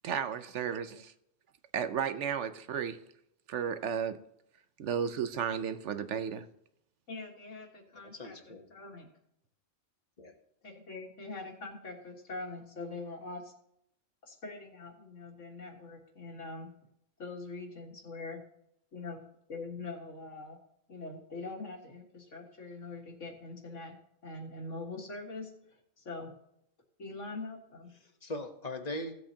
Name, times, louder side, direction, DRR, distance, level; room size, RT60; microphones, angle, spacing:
voice 1, 0.0-1.1 1.7-3.0 3.5-4.2 4.8-6.4, right 7 dB, 70° right, 10 dB, 1.0 m, -33 dB
voice 2, 7.1-9.1 10.6-13.5 14.2-16.7 17.2-18.4 18.9-19.2 19.5-20.6 20.9-24.0 24.2-26.3 27.0-27.9, left 3 dB, 75° left, 1 dB, 2.0 m, -43 dB
voice 3, 8.0-8.7 10.2-10.3 28.0-29.2, left 1 dB, 35° left, 5 dB, 1.2 m, -40 dB
16.0 x 7.8 x 2.8 m, 0.75 s
omnidirectional pair, 1.3 m